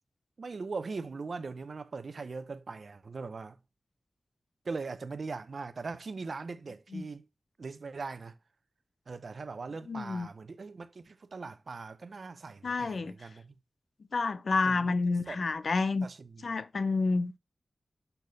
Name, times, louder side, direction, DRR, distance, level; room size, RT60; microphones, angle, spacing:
voice 1, 0.4-3.6 4.6-7.2 7.6-8.3 9.1-13.6 14.6-15.4 16.0-16.5, right 4 dB, 70° right, 0.6 m, -40 dB
voice 2, 9.9-10.3 12.6-13.1 14.1-16.1 16.4-17.4, left 3 dB, 70° left, 0.5 m, -29 dB
6.7 x 4.2 x 3.9 m
wide cardioid pair, 70°, 0 cm